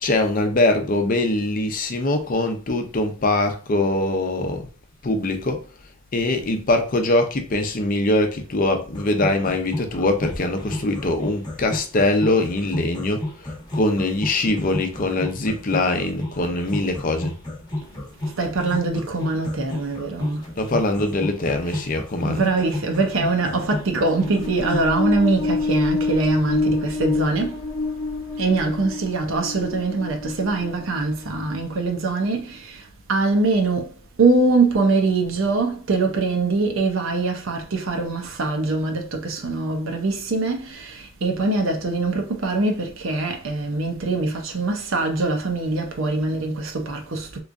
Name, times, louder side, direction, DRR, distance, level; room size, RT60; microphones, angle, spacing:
voice 1, 0.0-4.7 5.0-5.7 6.1-13.3 13.7-17.3 20.6-22.4, left 2 dB, 40° left, 0.6 m, -22 dB
sound 1, 8.9-24.9, left 1 dB, 20° left, 0.9 m, -32 dB
voice 2, 18.2-20.5 21.6-21.9 22.2-27.6 28.4-33.9 34.2-47.4, right 3 dB, 75° right, 0.7 m, -23 dB
sound 2, 24.1-31.7, left 3 dB, 80° left, 0.8 m, -27 dB
3.5 x 3.0 x 2.5 m
head